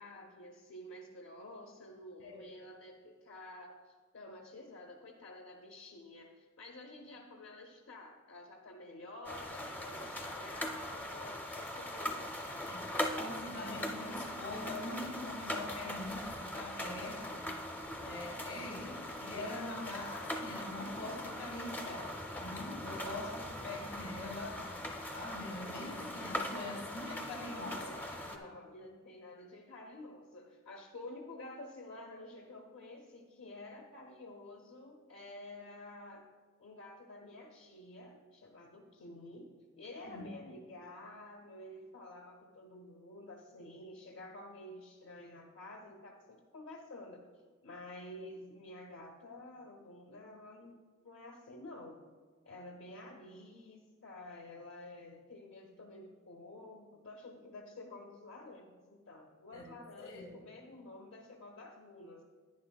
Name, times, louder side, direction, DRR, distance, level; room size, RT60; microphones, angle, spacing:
voice 1, 0.0-12.3 27.5-36.3 36.6-47.2 47.6-52.0 52.4-62.2, left 1 dB, 70° left, 1 dB, 0.7 m, -50 dB
sound 1, 9.2-28.4, left 1 dB, 10° left, 0.5 m, -41 dB
voice 2, 13.2-17.4 18.0-24.6 25.1-27.8 40.0-40.3 59.5-59.7 60.0-60.3, left 2 dB, 90° left, -1 dB, 2.1 m, -43 dB
10.5 x 9.6 x 2.3 m, 1.5 s
head